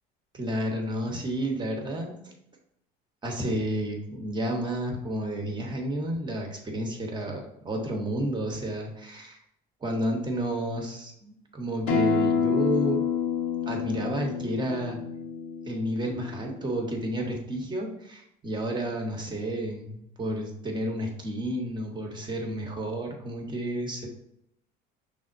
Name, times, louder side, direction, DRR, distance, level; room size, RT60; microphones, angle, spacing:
voice 1, 0.3-2.3 3.2-9.4 9.8-13.0 13.6-15.0 15.6-24.1, right 1 dB, 20° right, 2 dB, 1.0 m, -31 dB
Acoustic guitar, 11.9-17.1, left 6 dB, 80° left, 0.9 m, -28 dB
5.6 x 3.5 x 2.6 m, 0.76 s
supercardioid pair, 115°, 21 cm